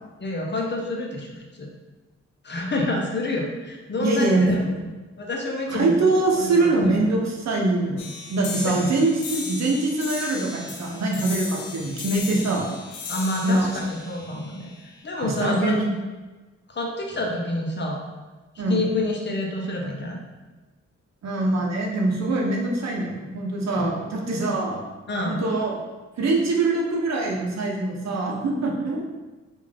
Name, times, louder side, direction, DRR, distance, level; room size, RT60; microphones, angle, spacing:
voice 1, 0.2-1.7 2.4-4.8 5.2-6.1 6.4-7.0 8.6-8.8 13.1-14.7 15.0-15.8 16.7-18.0 18.7-20.2 23.8-24.1 25.1-25.4, left 1 dB, 40° left, 0 dB, 0.7 m, -28 dB
voice 2, 4.0-4.7 5.7-12.7 13.4-13.7 15.2-15.9 18.6-18.8 21.2-24.8 25.3-25.8 26.2-29.0, right 2 dB, 65° right, -1 dB, 0.8 m, -23 dB
sound 1, 8.0-15.0, left 4 dB, 85° left, 0.6 m, -36 dB
3.5 x 2.5 x 3.4 m, 1.2 s
cardioid pair, 70°, 29 cm